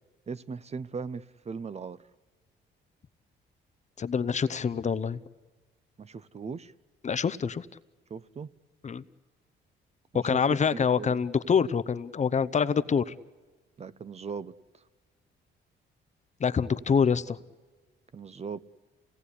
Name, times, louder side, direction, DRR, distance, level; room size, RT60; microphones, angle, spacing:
voice 1, 0.3-2.0 6.0-6.7 8.1-8.5 10.1-10.4 10.7-11.2 13.8-14.8 18.1-18.6, right 5 dB, 35° right, 0.7 m, -39 dB
voice 2, 4.0-5.2 7.0-7.7 8.8-9.0 10.1-13.1 16.4-17.4, left 6 dB, 35° left, 0.7 m, -26 dB
28.0 x 17.5 x 9.9 m
cardioid pair, 90°, 20 cm